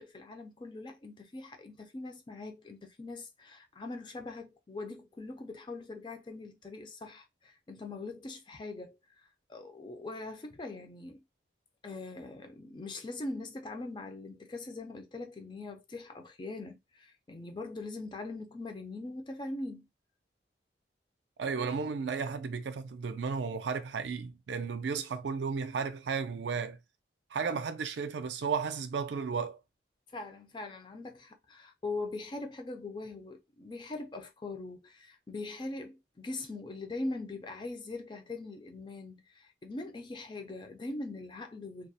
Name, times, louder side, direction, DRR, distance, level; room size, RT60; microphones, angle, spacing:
voice 1, 0.0-11.2 11.8-19.9 30.1-41.9, left 2 dB, 25° left, 0.3 m, -42 dB
voice 2, 21.4-26.8 27.3-29.6, right 5 dB, 80° right, 0.4 m, -34 dB
2.3 x 2.0 x 2.6 m
head